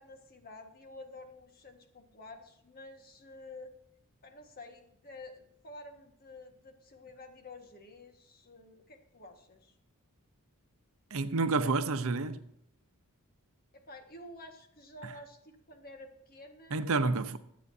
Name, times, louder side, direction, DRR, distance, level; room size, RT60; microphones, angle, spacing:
voice 1, 0.0-3.7 4.2-9.7 13.7-17.2, left 2 dB, 40° left, 1.6 m, -50 dB
voice 2, 11.1-12.4 15.0-15.1 16.7-17.4, right 3 dB, 65° right, 0.8 m, -29 dB
22.0 x 8.4 x 2.7 m
head